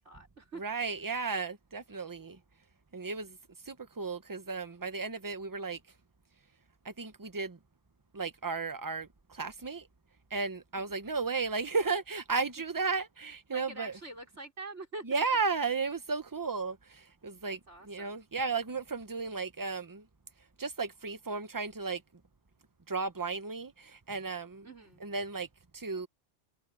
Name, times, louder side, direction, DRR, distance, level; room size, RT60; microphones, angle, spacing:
voice 1, 0.0-0.6 10.8-11.0 13.5-15.0 17.5-18.2 24.6-25.1, right 2 dB, 90° right, 5.7 m, -46 dB
voice 2, 0.5-2.4 2.9-3.4 3.6-5.8 6.8-7.6 8.1-9.9 10.3-14.0 15.0-20.1 20.6-22.0 22.9-24.7 25.0-25.5 25.7-26.1, right 4 dB, 20° right, 0.9 m, -34 dB
omnidirectional pair, 1.2 m